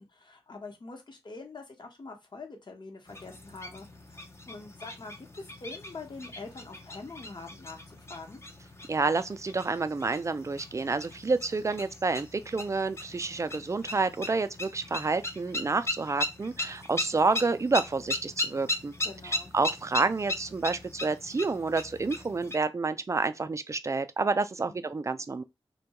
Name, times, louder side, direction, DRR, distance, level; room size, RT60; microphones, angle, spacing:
voice 1, 0.0-8.4 19.0-19.5 24.6-24.8, left 3 dB, 45° left, 0.9 m, -45 dB
sound 1, 3.1-22.6, left 1 dB, 25° left, 0.5 m, -38 dB
voice 2, 8.9-18.9 19.2-25.4, right 3 dB, 30° right, 0.3 m, -29 dB
2.2 x 2.2 x 2.9 m
cardioid pair, 45°, 10 cm